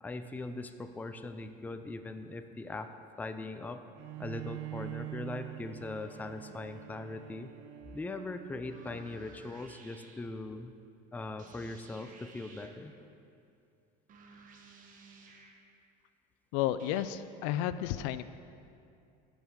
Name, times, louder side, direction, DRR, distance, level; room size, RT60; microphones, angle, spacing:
voice 1, 0.0-2.9 3.2-3.8 4.2-7.5 7.9-10.7 11.1-12.9, left 2 dB, 10° left, 8 dB, 0.4 m, -40 dB
Bowed string instrument, 3.9-9.6, right 15 dB, 65° right, 0.6 m, -45 dB
sound 1, 6.0-6.9 8.7-10.3 11.4-13.0 14.1-15.7 16.8-17.1, right 4 dB, 40° right, 1.1 m, -56 dB
voice 2, 16.5-18.2, left 12 dB, 75° left, 13 dB, 0.4 m, -32 dB
11.5 x 5.3 x 4.7 m, 2.5 s
supercardioid pair, 110°, 21 cm